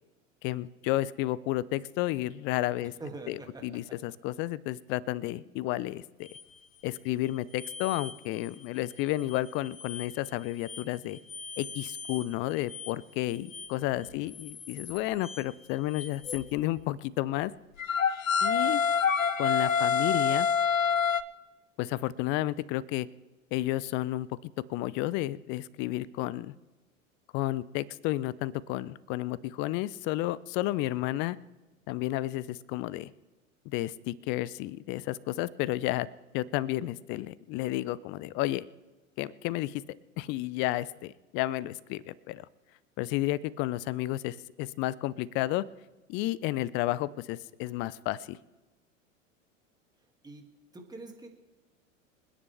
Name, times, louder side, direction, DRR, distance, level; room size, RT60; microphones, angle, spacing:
voice 1, 0.4-2.9 3.3-6.3 6.8-11.2 11.6-17.5 18.4-18.8 19.4-20.5 21.8-23.1 23.5-26.5 27.3-31.4 31.9-33.1 33.7-36.1 36.3-38.7 39.2-39.8 40.2-42.5 43.0-45.6 46.1-48.4, left 16 dB, 30° left, 21 dB, 0.5 m, -32 dB
voice 2, 2.8-4.0 14.0-14.1 50.2-50.5 50.7-51.3, right 3 dB, 10° right, 3 dB, 2.2 m, -45 dB
sound 1, 6.3-6.4 7.6-8.1 8.5-8.6 9.0-9.1 9.3-10.1 10.7-10.8 11.3-12.2 12.7-12.9 13.5-13.7 14.1-15.4 15.9-16.8 17.8-21.2, left 6 dB, 90° left, 0.6 m, -29 dB
26.5 x 10.0 x 3.4 m, 1.2 s
figure-of-eight pair, 90°, 39 cm